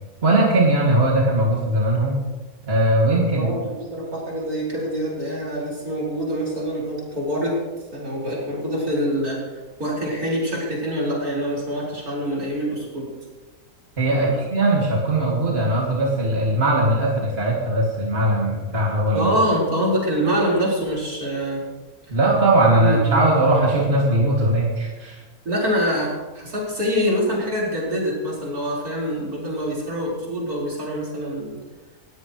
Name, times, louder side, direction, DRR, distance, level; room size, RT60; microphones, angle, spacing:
voice 1, 0.2-2.2 2.7-3.5 14.0-19.3 22.1-25.2, right 1 dB, 40° right, -4 dB, 2.9 m, -19 dB
voice 2, 3.3-3.6 3.9-7.6 7.9-13.1 14.1-14.4 19.1-21.7 22.7-23.2 25.5-31.5, equal, 80° right, -5 dB, 5.4 m, -25 dB
19.5 x 16.5 x 3.3 m, 1.2 s
omnidirectional pair, 1.6 m